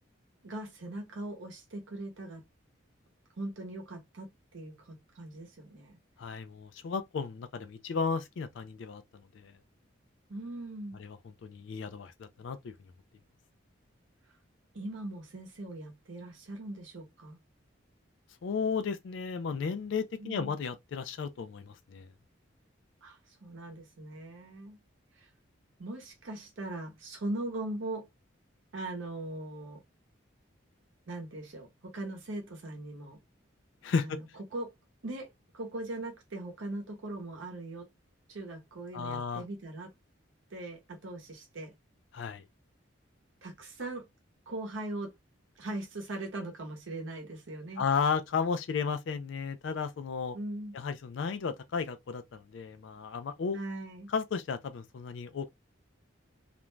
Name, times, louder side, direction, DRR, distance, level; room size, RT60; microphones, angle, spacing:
voice 1, 0.4-2.4 3.4-6.0 10.3-11.0 14.7-17.4 20.2-20.6 23.0-24.8 25.1-25.3 25.8-28.1 28.7-29.8 31.1-33.2 34.0-34.7 35.0-35.3 35.5-37.9 38.3-39.9 40.5-41.7 43.4-44.1 44.5-45.1 45.6-47.8 50.3-50.8 53.5-54.1, right 2 dB, 75° right, 0.7 m, -40 dB
voice 2, 6.2-9.0 9.4-9.5 11.0-11.2 11.4-12.7 18.4-22.1 33.8-34.2 38.9-39.4 42.1-42.4 47.8-50.4 50.7-53.6 54.1-55.5, left 5 dB, 65° left, 0.3 m, -33 dB
2.5 x 2.1 x 3.1 m
head